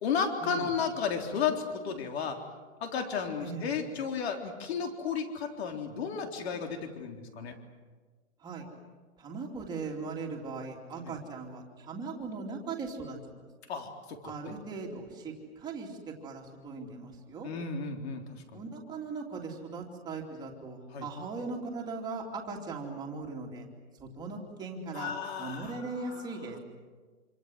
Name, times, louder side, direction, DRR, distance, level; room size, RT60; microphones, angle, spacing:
voice 1, 0.0-2.4 2.8-7.6 11.0-11.1 13.7-14.5 17.4-18.6 20.9-21.1 24.9-26.2, left 6 dB, 50° left, 4 dB, 3.9 m, -33 dB
voice 2, 3.4-3.8 8.4-8.7 9.2-13.2 14.2-17.5 18.5-23.7 24.0-25.1 25.4-26.6, right 4 dB, 10° right, 0 dB, 2.9 m, -39 dB
27.0 x 26.0 x 8.0 m, 1.4 s
hypercardioid pair, 165°, 40 cm